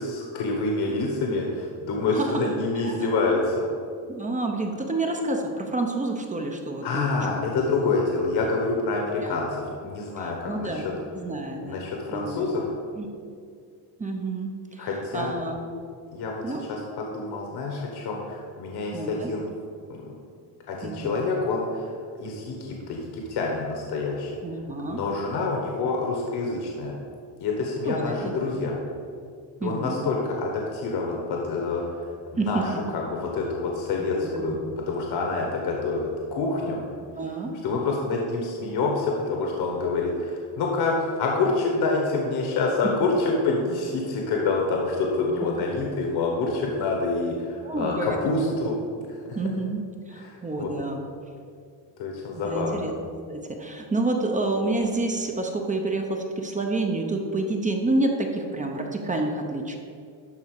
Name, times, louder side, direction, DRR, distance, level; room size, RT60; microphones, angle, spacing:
voice 1, 0.0-3.6 6.8-10.9 11.6-12.7 14.8-15.3 16.1-16.4 16.7-19.4 19.9-20.1 20.7-24.3 24.8-26.9 27.4-28.8 29.6-32.0 32.3-34.6 34.9-36.8 37.6-48.7 49.1-49.4 50.1-50.7 52.0-52.8, left 3 dB, 60° left, 0 dB, 1.3 m, -27 dB
voice 2, 2.1-2.4 2.8-3.0 4.1-7.7 9.2-9.4 10.5-10.8 11.1-12.6 13.0-13.1 14.0-14.9 15.1-15.6 16.4-16.7 18.9-19.3 20.8-21.3 24.4-25.0 27.8-28.3 29.6-30.1 32.4-32.8 34.2-34.5 37.2-37.5 42.8-42.9 47.6-48.5 49.3-49.8 50.1-51.0 52.3-52.9 53.3-59.8, right 2 dB, 15° right, 2 dB, 0.7 m, -29 dB
12.0 x 4.2 x 6.5 m, 2.3 s
cardioid pair, 165°, 44 cm